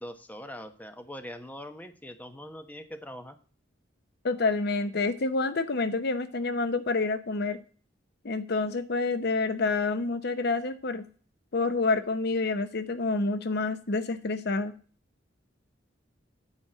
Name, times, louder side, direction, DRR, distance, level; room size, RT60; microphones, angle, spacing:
voice 1, 0.0-3.4, equal, 10° left, 8 dB, 1.1 m, -42 dB
voice 2, 4.2-7.6 8.2-11.0 11.5-14.7, left 3 dB, 60° left, 11 dB, 0.7 m, -28 dB
9.2 x 5.2 x 7.5 m, 0.40 s
head